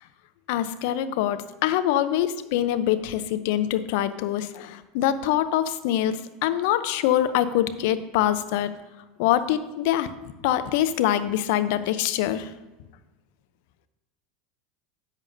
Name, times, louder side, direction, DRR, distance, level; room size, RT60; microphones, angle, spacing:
voice 1, 0.5-8.7 9.2-10.1 10.4-12.5, left 11 dB, 65° left, 12 dB, 0.6 m, -24 dB
10.5 x 8.2 x 2.7 m, 1.1 s
hypercardioid pair, 85°, 0 cm